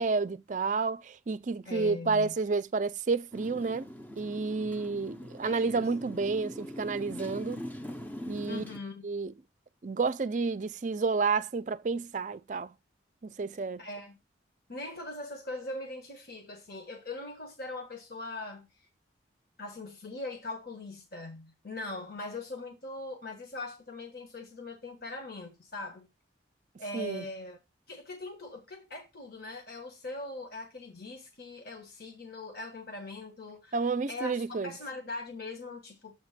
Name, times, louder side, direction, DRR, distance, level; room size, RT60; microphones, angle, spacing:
voice 1, 0.0-3.9 4.2-7.6 8.3-8.6 9.0-9.3 9.8-12.7 13.2-13.9 26.9-27.2 33.7-34.7, right 4 dB, 40° right, 0.4 m, -30 dB
voice 2, 1.6-2.3 5.4-5.8 8.5-9.0 13.8-14.2 14.7-18.9 19.6-26.1 26.8-27.6 27.9-33.8 34.1-36.1, left 2 dB, 55° left, 1.3 m, -41 dB
Motorcycle, 3.3-8.8, equal, 10° left, 0.6 m, -42 dB
8.1 x 3.0 x 5.8 m
head